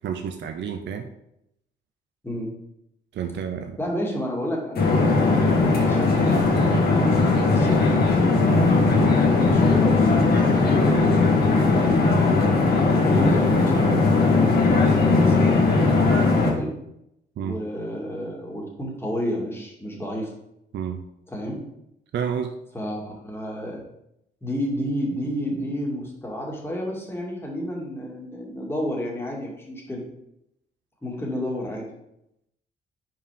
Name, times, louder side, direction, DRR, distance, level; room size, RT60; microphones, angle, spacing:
voice 1, 0.0-1.1 3.1-3.8 17.4-17.6 20.7-21.0 22.1-22.5, right 7 dB, 65° right, 6 dB, 0.6 m, -30 dB
voice 2, 3.8-6.7 7.5-8.0 8.8-12.0 12.8-13.4 13.8-14.3 14.8-15.5 16.5-16.7 17.4-20.3 21.3-21.6 22.7-23.8 24.4-30.0 31.0-31.9, equal, 10° left, -2 dB, 2.3 m, -31 dB
sound 1, 4.8-16.5, left 3 dB, 50° left, 1.9 m, -19 dB
5.7 x 4.9 x 5.1 m, 0.81 s
cardioid pair, 90°, 20 cm